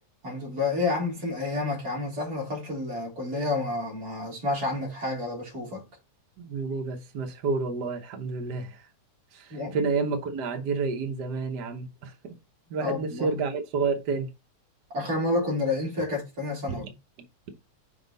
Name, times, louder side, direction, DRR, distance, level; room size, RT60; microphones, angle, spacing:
voice 1, 0.2-5.9 9.5-9.8 12.8-13.3 14.9-16.9, left 2 dB, 30° right, 3.2 m, -29 dB
voice 2, 6.4-8.9 9.3-12.3 12.7-14.3 16.7-16.9, right 4 dB, 90° right, 0.9 m, -30 dB
5.9 x 5.2 x 4.0 m
omnidirectional pair, 3.4 m